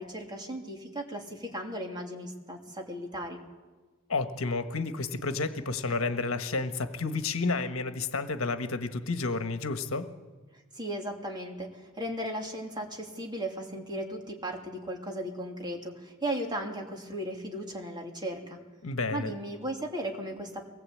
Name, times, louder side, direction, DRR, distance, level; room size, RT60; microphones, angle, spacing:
voice 1, 0.0-3.4 10.7-18.6 19.1-20.6, right 1 dB, 20° right, 1 dB, 3.0 m, -36 dB
voice 2, 4.1-10.1 18.8-19.3, left 3 dB, 75° left, 9 dB, 1.4 m, -31 dB
23.5 x 19.5 x 8.6 m, 1.3 s
head